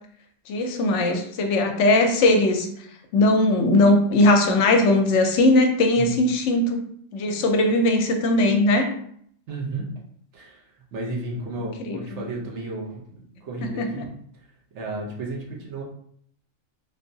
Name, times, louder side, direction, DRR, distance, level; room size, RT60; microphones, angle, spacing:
voice 1, 0.5-2.7 3.1-6.8 7.1-8.9 11.8-12.2 13.6-13.9, left 2 dB, 70° left, 5 dB, 0.8 m, -19 dB
voice 2, 9.5-10.0 10.3-10.6 10.9-14.2 14.7-15.8, right 2 dB, 65° right, -1 dB, 1.1 m, -33 dB
3.5 x 2.7 x 2.6 m, 0.64 s
omnidirectional pair, 1.4 m